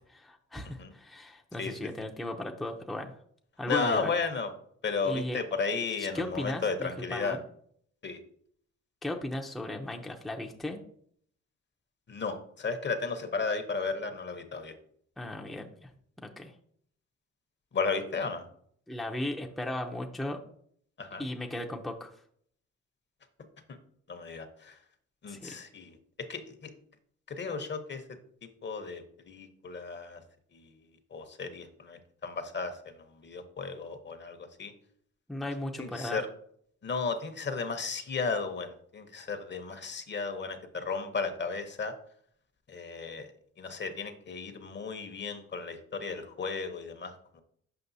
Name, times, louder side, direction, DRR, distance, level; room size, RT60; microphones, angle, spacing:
voice 1, 0.1-3.1 3.6-4.1 5.0-5.4 6.1-7.4 9.0-10.8 15.2-15.9 16.2-16.5 18.9-20.4 21.2-22.1 25.3-25.5 35.3-36.2, left 1 dB, ahead, 2 dB, 0.6 m, -36 dB
voice 2, 3.7-4.5 4.8-7.4 8.0-8.2 12.1-14.7 17.7-18.4 21.0-21.2 23.7-23.8 24.1-24.8 25.2-26.0 26.3-26.7 27.3-28.0 28.6-30.2 30.5-30.7 31.1-34.7 35.8-36.3 36.8-41.9 42.7-43.3 43.6-47.4, left 4 dB, 35° left, 8 dB, 0.9 m, -34 dB
6.8 x 5.3 x 2.7 m, 0.62 s
cardioid pair, 90°, 30 cm